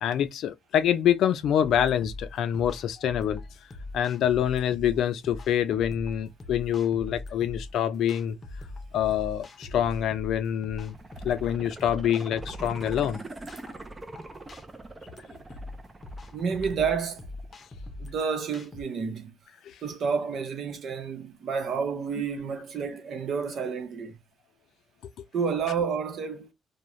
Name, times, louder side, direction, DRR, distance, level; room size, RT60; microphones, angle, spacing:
voice 1, 0.0-3.4 3.9-8.4 8.9-11.0 11.2-13.2 19.6-19.7, left 10 dB, 75° left, 0.4 m, -26 dB
sound 1, 1.6-18.8, left 2 dB, 35° left, 0.6 m, -42 dB
sound 2, 10.8-17.8 18.2-18.3, right 2 dB, 25° right, 0.5 m, -44 dB
voice 2, 16.3-17.3 18.0-19.3 19.8-24.2 25.3-26.5, right 6 dB, 65° right, 0.8 m, -30 dB
2.3 x 2.2 x 3.0 m
cardioid pair, 90°, 0 cm